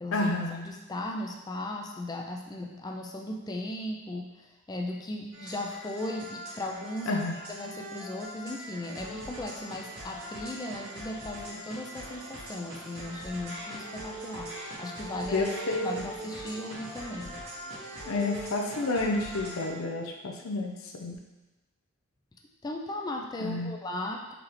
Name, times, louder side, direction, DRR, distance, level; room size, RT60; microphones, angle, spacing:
voice 1, 0.1-0.7 7.1-7.4 15.3-15.9 18.0-21.2 23.4-23.7, left 2 dB, 75° left, 2 dB, 0.5 m, -30 dB
voice 2, 0.6-14.5 14.8-15.5 15.8-17.4 22.6-24.3, left 1 dB, 20° left, 1 dB, 0.3 m, -37 dB
sound 1, 5.3-19.7, right 1 dB, 85° right, 1.4 m, -41 dB
3.7 x 3.3 x 3.0 m, 1.1 s
head